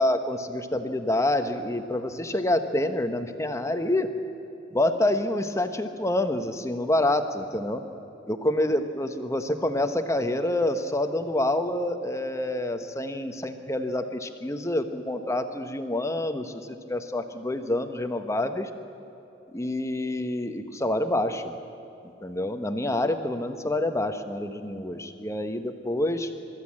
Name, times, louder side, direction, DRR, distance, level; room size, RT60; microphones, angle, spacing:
voice 1, 0.0-4.1 4.7-7.8 8.3-18.7 19.5-21.5 22.2-26.3, left 1 dB, 15° left, 8 dB, 1.0 m, -27 dB
23.0 x 13.5 x 8.7 m, 2.9 s
head